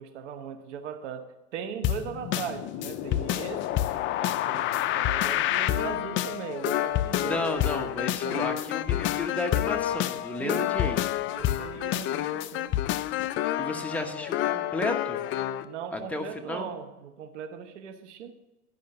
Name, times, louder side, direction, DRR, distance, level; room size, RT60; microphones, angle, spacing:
voice 1, 0.0-3.8 4.2-7.5 8.2-8.6 10.4-12.8 13.7-14.1 15.6-18.3, right 7 dB, 80° right, 1.1 m, -39 dB
sound 1, 1.8-15.7, left 13 dB, 35° left, 0.4 m, -28 dB
voice 2, 7.2-11.0 13.6-15.2 15.9-16.7, left 2 dB, 5° left, 1.1 m, -33 dB
11.5 x 5.4 x 6.6 m
hypercardioid pair, 110°, 35 cm